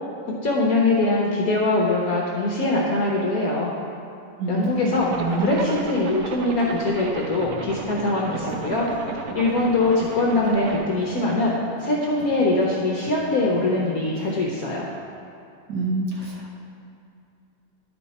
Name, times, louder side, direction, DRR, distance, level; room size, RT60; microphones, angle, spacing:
voice 1, 0.4-3.7 4.5-5.1 5.4-8.9 9.3-14.9, left 2 dB, 60° left, -3 dB, 1.0 m, -22 dB
voice 2, 4.4-4.9 5.2-5.6 15.7-16.5, right 2 dB, 60° right, -2 dB, 1.3 m, -26 dB
Zipper (clothing), 4.9-10.9, right 5 dB, 90° right, 0.8 m, -34 dB
sound 1, 6.6-14.7, equal, 15° right, 1.9 m, -41 dB
11.0 x 4.5 x 4.1 m, 2.6 s
omnidirectional pair, 2.3 m